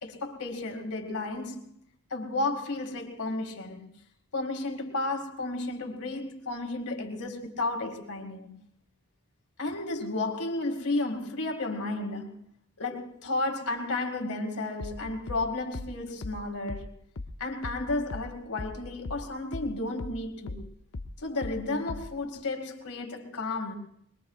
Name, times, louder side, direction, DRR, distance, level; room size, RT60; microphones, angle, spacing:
voice 1, 0.0-1.7 2.1-3.9 4.3-8.5 9.6-12.4 12.8-16.9 17.4-20.6 21.2-23.7, left 2 dB, 90° left, 2.2 m, -32 dB
sound 1, 14.8-19.7 20.0-22.2, left 2 dB, 60° left, 0.7 m, -39 dB
22.5 x 21.5 x 2.4 m
head